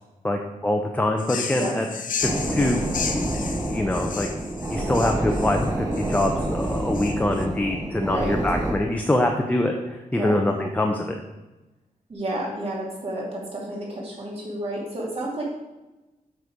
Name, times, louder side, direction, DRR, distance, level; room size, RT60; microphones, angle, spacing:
voice 1, 0.2-1.9 2.2-2.8 3.1-4.3 4.7-11.2, left 1 dB, 10° left, 2 dB, 0.6 m, -24 dB
sound 1, 1.2-7.5, left 6 dB, 70° left, 0.7 m, -33 dB
sound 2, 2.2-8.7, right 1 dB, 25° right, 1.2 m, -28 dB
voice 2, 7.9-8.3 10.1-10.3 12.1-15.4, right 1 dB, 45° right, -4 dB, 2.6 m, -31 dB
7.9 x 5.5 x 4.9 m, 1.1 s
wide cardioid pair, 170°, 14 cm